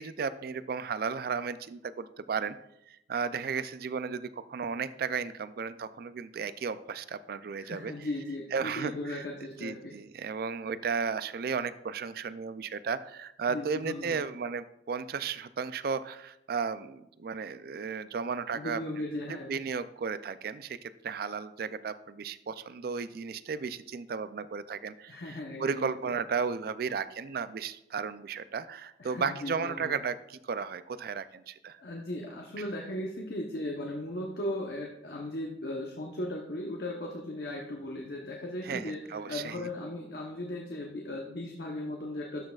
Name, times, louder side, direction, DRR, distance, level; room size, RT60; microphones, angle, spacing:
voice 1, 0.0-2.6 2.9-7.9 8.5-9.3 9.6-18.8 19.3-31.8 38.6-39.7, right 5 dB, 55° right, 14 dB, 0.4 m, -34 dB
voice 2, 7.6-9.9 13.5-14.2 18.5-19.5 25.1-26.1 29.0-30.0 31.8-42.4, left 1 dB, 60° left, 0 dB, 0.9 m, -37 dB
12.5 x 6.4 x 2.4 m, 0.83 s
head